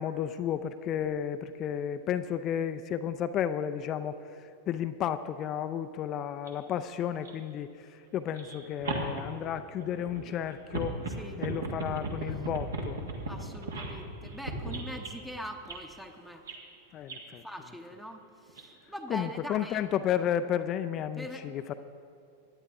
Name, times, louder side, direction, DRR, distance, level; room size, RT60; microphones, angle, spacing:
voice 1, 0.0-11.0 11.4-13.0 16.9-17.4 19.1-21.7, left 9 dB, 35° left, 10 dB, 0.4 m, -32 dB
sound 1, 6.5-6.6 7.1-7.3 8.3-15.1 15.6-15.8 16.5-16.6 17.1-17.3 18.5-18.6 19.2-19.3, right 2 dB, 65° right, 1.8 m, -36 dB
voice 2, 13.3-16.4 17.4-19.8 21.2-21.5, equal, 5° right, 4 dB, 0.9 m, -42 dB
18.0 x 11.0 x 3.6 m, 2.3 s
figure-of-eight pair, 90°, 0 cm